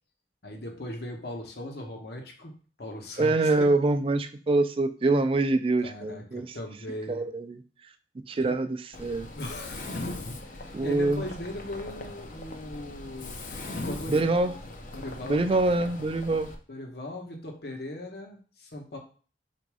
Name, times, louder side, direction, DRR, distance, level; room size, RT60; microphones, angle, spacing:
voice 1, 0.4-3.7 5.8-7.2 8.3-8.5 9.4-13.4 13.8-14.6 14.9-15.6 16.7-19.0, left 1 dB, 65° left, 2 dB, 1.0 m, -39 dB
voice 2, 3.2-6.5 7.1-7.6 8.3-9.3 10.7-11.2 14.1-14.5 15.2-16.5, right 2 dB, 30° right, 10 dB, 0.4 m, -25 dB
Mechanisms, 8.9-16.5, left 2 dB, 45° left, 0.6 m, -39 dB
4.1 x 2.6 x 4.7 m, 0.39 s
head